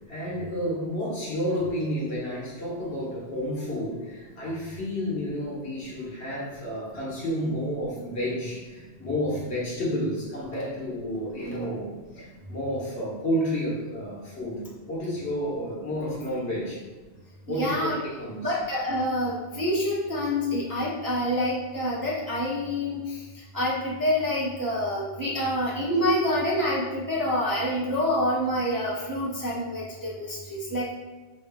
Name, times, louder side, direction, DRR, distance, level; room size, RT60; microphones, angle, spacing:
voice 1, 0.0-16.8 17.5-18.5, equal, 65° left, -6 dB, 1.6 m, -31 dB
voice 2, 17.5-18.0 18.4-23.2 23.5-30.9, left 1 dB, 20° right, -7 dB, 0.6 m, -27 dB
5.4 x 3.2 x 2.2 m, 1.3 s
omnidirectional pair, 1.2 m